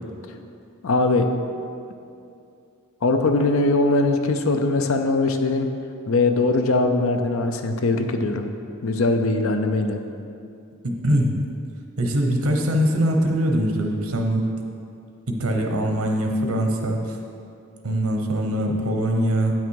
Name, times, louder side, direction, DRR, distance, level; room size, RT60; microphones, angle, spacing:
voice 1, 0.8-1.3 3.0-5.7 6.1-8.5 8.8-10.0, left 2 dB, 70° left, 6 dB, 0.6 m, -21 dB
voice 2, 10.8-11.4 12.0-14.4 15.3-17.2 17.8-19.5, equal, 80° right, 2 dB, 1.0 m, -22 dB
8.8 x 5.7 x 4.7 m, 2.5 s
head